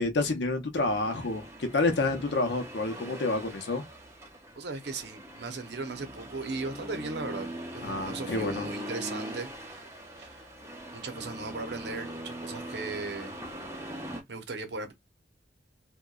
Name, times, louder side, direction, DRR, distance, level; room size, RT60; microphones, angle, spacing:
voice 1, 0.0-3.8 7.8-8.7, left 2 dB, 80° left, 0.7 m, -29 dB
Accelerating revving vroom, 0.7-14.2, equal, 15° right, 0.5 m, -41 dB
voice 2, 4.5-9.8 10.2-10.5 10.9-13.4 14.3-14.9, right 3 dB, 75° right, 0.7 m, -37 dB
2.7 x 2.2 x 2.3 m
head